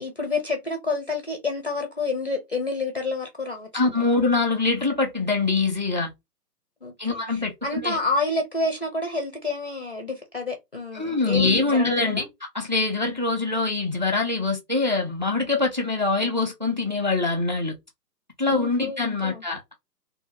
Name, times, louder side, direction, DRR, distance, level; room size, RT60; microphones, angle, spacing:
voice 1, 0.0-3.9 6.8-12.3 18.5-19.4, left 3 dB, 40° left, 0.4 m, -29 dB
voice 2, 3.7-6.1 7.0-8.0 10.9-12.2 12.5-17.7 18.4-19.7, left 3 dB, 30° right, 0.4 m, -24 dB
2.6 x 2.1 x 3.0 m
figure-of-eight pair, 135°, 49 cm